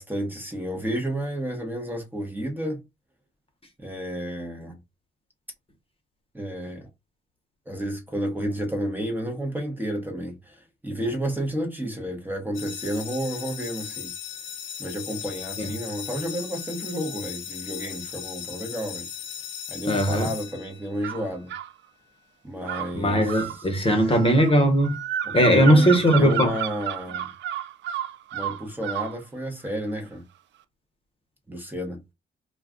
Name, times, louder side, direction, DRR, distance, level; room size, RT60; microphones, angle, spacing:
voice 1, 0.0-2.8 3.8-4.8 6.3-6.9 7.7-14.1 14.8-19.1 19.7-21.5 22.4-23.7 24.0-24.2 25.2-27.3 28.3-30.2 31.5-32.0, equal, 10° right, 0.9 m, -31 dB
sound 1, 12.5-21.2, left 8 dB, 80° left, 0.7 m, -37 dB
voice 2, 19.8-20.3 22.9-25.0 25.3-26.5, equal, 30° left, 0.9 m, -19 dB
sound 2, 21.0-21.7 22.6-29.2, right 10 dB, 70° right, 0.4 m, -32 dB
2.3 x 2.3 x 3.6 m
cardioid pair, 90°, 20 cm